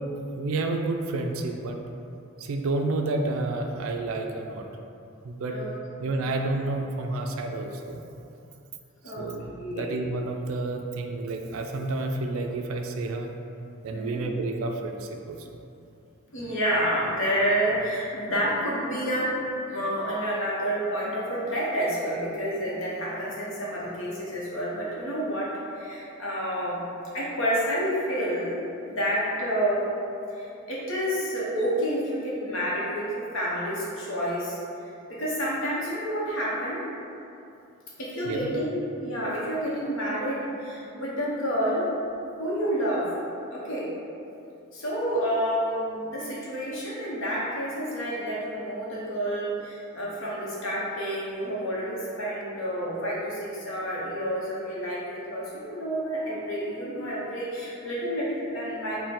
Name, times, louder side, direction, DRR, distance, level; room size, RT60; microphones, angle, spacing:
voice 1, 0.3-1.8 2.4-4.6 5.2-5.6 6.0-8.0 9.2-13.3 13.8-15.5 38.3-38.5, right 2 dB, 70° right, 4 dB, 0.3 m, -30 dB
voice 2, 9.6-9.9 13.9-14.2 16.3-19.3 19.7-26.8 27.1-28.6 28.8-29.9 30.3-34.6 35.1-36.8 38.0-41.9 42.4-43.1 43.5-43.9 44.7-59.0, equal, 65° left, -6 dB, 0.9 m, -29 dB
3.7 x 2.2 x 4.2 m, 2.6 s
head